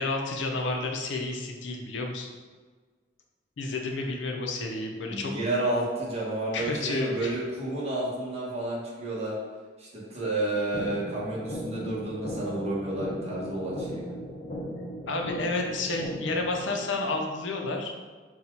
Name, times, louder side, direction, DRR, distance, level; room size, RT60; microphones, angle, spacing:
voice 1, 0.0-2.3 3.6-5.3 6.5-7.3 15.1-17.9, left 3 dB, 80° left, 2 dB, 0.6 m, -31 dB
voice 2, 5.0-9.3 9.8-14.1, right 2 dB, 35° right, -5 dB, 1.0 m, -31 dB
sound 1, 10.7-16.7, equal, 35° left, 0.5 m, -37 dB
4.1 x 2.3 x 4.4 m, 1.4 s
head